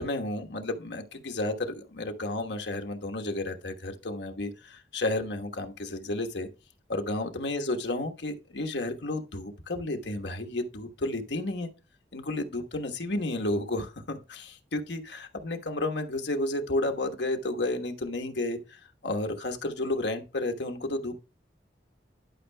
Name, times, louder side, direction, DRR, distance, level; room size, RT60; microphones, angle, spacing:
voice 1, 0.0-6.5 6.9-11.7 12.1-21.2, left 2 dB, 75° left, 1.2 m, -32 dB
12.0 x 5.6 x 2.2 m
head